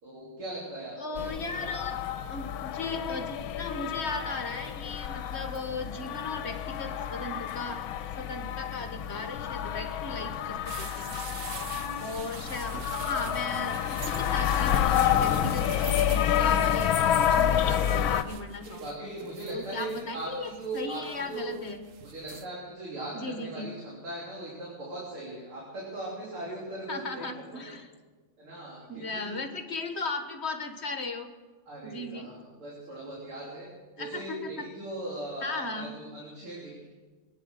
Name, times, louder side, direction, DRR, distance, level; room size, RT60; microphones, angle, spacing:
voice 1, 0.0-1.2 11.8-12.1 18.7-21.5 22.0-27.3 27.5-27.7 28.4-29.3 31.7-33.7 34.0-36.8, right 2 dB, 85° right, -5 dB, 4.1 m, -39 dB
voice 2, 1.0-2.0 2.3-7.8 8.2-11.2 12.0-18.8 19.5-21.8 23.1-23.7 26.9-27.9 28.9-31.3 31.8-32.3 34.0-34.6 35.4-35.9, left 3 dB, 40° left, 6 dB, 1.3 m, -37 dB
sound 1, 1.2-18.2, left 10 dB, 75° left, 1.5 m, -29 dB
sound 2, 10.7-22.5, right 6 dB, 55° right, 0.9 m, -44 dB
22.5 x 9.6 x 6.5 m, 1.4 s
omnidirectional pair, 2.3 m